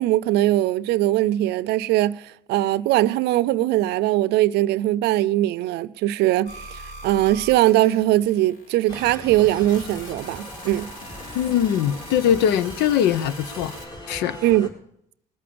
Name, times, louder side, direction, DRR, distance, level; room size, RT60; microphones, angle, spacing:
voice 1, 0.0-10.9 14.4-14.7, right 15 dB, 80° right, 0.5 m, -21 dB
sound 1, 6.5-9.2 9.4-13.9, equal, 60° left, 4.0 m, -42 dB
sound 2, 8.9-14.7, left 1 dB, 30° left, 4.1 m, -39 dB
voice 2, 11.3-13.7 14.1-14.4, left 9 dB, 90° left, 0.8 m, -21 dB
20.0 x 8.6 x 6.9 m
cardioid pair, 110°, 17 cm